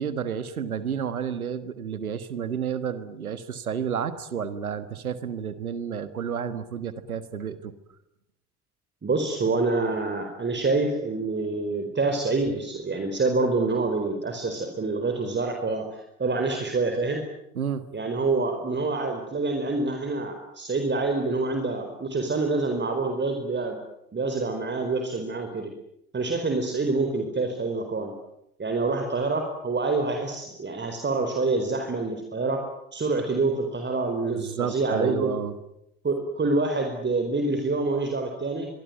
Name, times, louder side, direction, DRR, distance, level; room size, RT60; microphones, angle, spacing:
voice 1, 0.0-7.7 17.5-17.9 34.3-35.5, right 7 dB, 80° right, 13 dB, 1.6 m, -31 dB
voice 2, 9.0-17.2 17.9-23.8 24.1-25.7 26.1-28.1 28.6-32.6 32.9-35.3 36.0-38.7, right 3 dB, 25° right, 4 dB, 4.5 m, -26 dB
24.0 x 23.5 x 9.3 m, 0.79 s
figure-of-eight pair, 55°, 42 cm